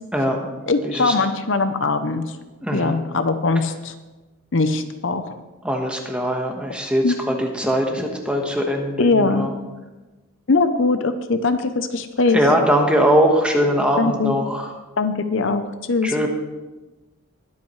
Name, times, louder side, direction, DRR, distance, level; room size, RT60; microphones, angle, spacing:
voice 1, 0.1-1.1 2.6-3.0 5.6-9.5 12.3-14.7 16.0-16.3, equal, 5° right, 1 dB, 1.3 m, -21 dB
voice 2, 0.7-2.3 2.7-3.9 4.5-5.4 7.0-7.1 9.0-9.5 10.5-12.4 14.0-14.3 15.0-16.3, left 3 dB, 60° left, 9 dB, 0.7 m, -21 dB
21.0 x 8.4 x 3.2 m, 1.1 s
head